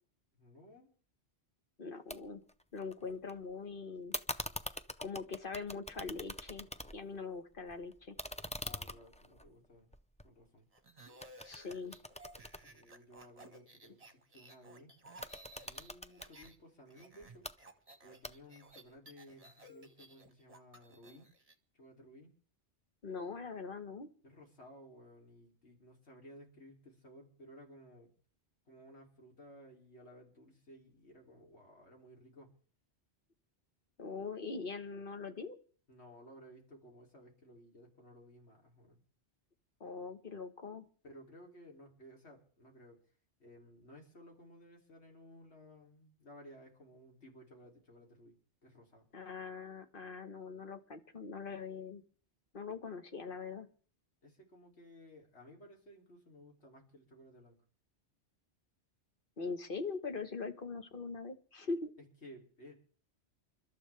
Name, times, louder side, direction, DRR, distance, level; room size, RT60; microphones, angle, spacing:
voice 1, 0.3-0.9 3.0-3.1 8.6-9.9 10.2-10.6 12.6-14.9 15.5-17.4 18.0-21.3 21.7-22.3 24.2-28.1 28.7-32.5 35.9-39.0 41.0-43.0 43.4-48.4 48.6-49.1 54.2-57.6 62.0-62.7, equal, 70° left, 0 dB, 3.3 m, -57 dB
voice 2, 1.8-2.4 2.7-4.1 5.0-6.7 6.9-8.2 11.4-12.0 23.0-24.1 34.0-35.6 39.8-40.8 49.1-52.0 52.5-53.7 59.4-61.9, left 4 dB, 50° left, 7 dB, 1.5 m, -42 dB
sound 1, 2.1-2.2 2.5-3.3 4.1-7.2 7.5-10.8 11.2-13.4 15.1-16.3 17.2-17.5 18.2-18.7, left 1 dB, 10° left, 0.3 m, -44 dB
sound 2, 10.7-16.6 16.8-21.5, right 1 dB, 30° right, 1.5 m, -57 dB
29.0 x 12.5 x 3.4 m, 0.44 s
omnidirectional pair, 1.2 m